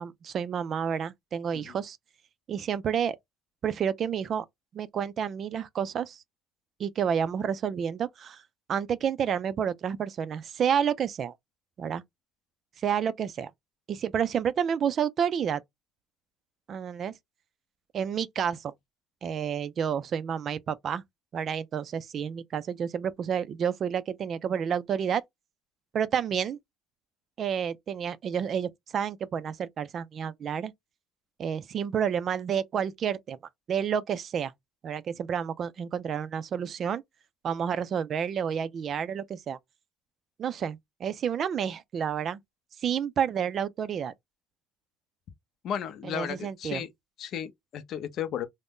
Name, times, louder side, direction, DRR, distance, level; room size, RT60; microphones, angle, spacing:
voice 1, 0.0-2.0 2.5-3.2 3.6-4.5 4.7-6.2 6.8-8.4 8.7-11.3 11.8-12.0 12.8-13.5 13.9-15.6 16.7-17.1 17.9-18.7 19.2-21.0 21.3-25.2 25.9-26.6 27.4-30.7 31.4-33.4 33.7-34.5 34.8-37.0 37.4-39.6 40.4-42.4 42.8-44.1 46.1-46.8, right 8 dB, 45° right, 0.3 m, -30 dB
voice 2, 45.6-46.9 47.2-48.5, left 9 dB, 55° left, 0.5 m, -34 dB
2.5 x 2.1 x 3.6 m
cardioid pair, 110°, 0 cm